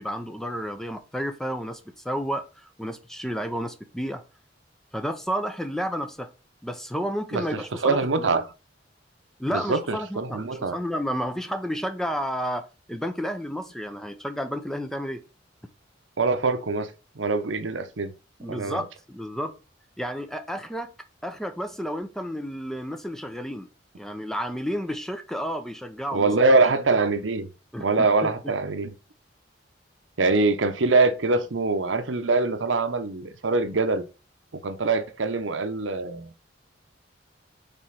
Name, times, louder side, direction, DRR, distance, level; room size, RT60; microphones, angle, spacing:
voice 1, 0.0-4.2 4.9-6.3 6.6-8.2 9.4-15.2 18.4-18.8 19.1-19.5 20.0-20.9 21.2-23.7 23.9-26.3 27.7-28.1, equal, ahead, 0.7 m, -31 dB
voice 2, 7.3-8.5 9.5-10.8 16.2-18.1 18.5-18.8 26.1-27.5 27.8-28.9 30.2-34.1 34.6-36.3, right 3 dB, 80° right, 0.8 m, -24 dB
5.4 x 4.2 x 5.7 m
head